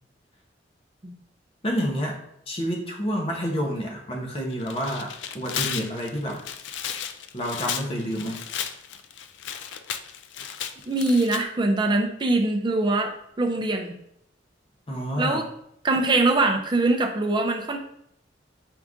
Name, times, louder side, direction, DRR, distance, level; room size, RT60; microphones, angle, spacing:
voice 1, 1.6-2.2 2.5-5.1 5.3-6.4 7.3-8.4 14.9-15.4, equal, 30° left, -1 dB, 0.8 m, -28 dB
Tearing, 4.5-11.4, left 8 dB, 75° left, 0.3 m, -34 dB
voice 2, 10.9-14.0 15.2-15.5 15.8-17.8, right 2 dB, 25° right, 3 dB, 0.5 m, -23 dB
4.6 x 2.6 x 3.6 m, 0.72 s
head